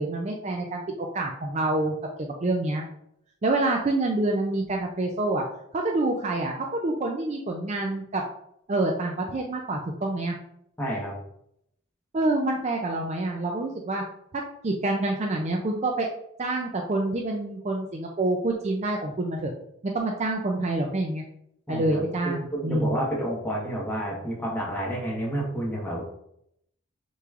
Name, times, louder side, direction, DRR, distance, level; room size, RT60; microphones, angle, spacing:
voice 1, 0.0-2.8 3.4-5.4 5.7-8.2 8.7-10.4 12.1-14.0 14.3-16.1 16.4-19.5 19.9-21.2 21.7-23.0, right 2 dB, 30° right, 1 dB, 0.4 m, -27 dB
voice 2, 10.8-11.2 21.7-26.0, right 1 dB, 10° left, -4 dB, 1.2 m, -30 dB
6.7 x 3.1 x 2.4 m, 0.75 s
head